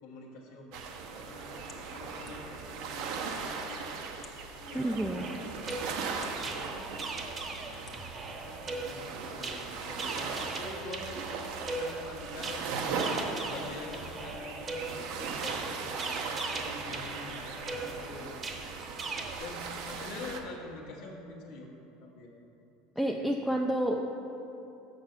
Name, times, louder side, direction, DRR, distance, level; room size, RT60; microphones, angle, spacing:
voice 1, 0.0-4.1 4.5-7.0 7.9-11.3 11.7-12.6 13.4-18.8 19.4-21.7 22.0-22.3 23.0-23.5, left 2 dB, 75° left, -2 dB, 1.3 m, -46 dB
sound 1, 0.7-20.4, right 5 dB, 65° right, 0.8 m, -38 dB
sound 2, 1.7-2.7 3.5-3.6 4.1-4.5 5.2-6.3 6.8-6.9 7.7-8.0, left 5 dB, 35° left, 1.0 m, -52 dB
voice 2, 4.7-5.2 23.0-24.1, right 1 dB, ahead, 1 dB, 0.4 m, -29 dB
sound 3, 5.0-19.4, right 3 dB, 25° right, 0.9 m, -40 dB
6.7 x 6.6 x 5.9 m, 2.9 s
supercardioid pair, 130°, 0 cm